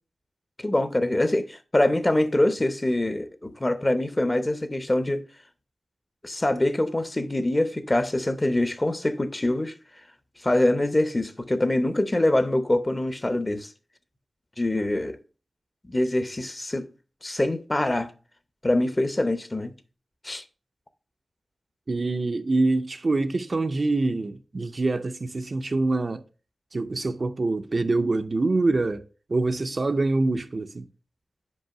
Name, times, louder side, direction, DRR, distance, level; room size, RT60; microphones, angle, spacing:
voice 1, 0.6-5.2 6.2-9.7 10.4-13.7 14.6-15.2 15.9-16.9 17.2-18.1 18.6-19.7 20.2-20.4, left 1 dB, 20° left, 0.7 m, -24 dB
voice 2, 21.9-26.2 26.7-30.9, right 2 dB, 40° right, 0.5 m, -25 dB
5.4 x 5.4 x 5.9 m
wide cardioid pair, 120°, 0 cm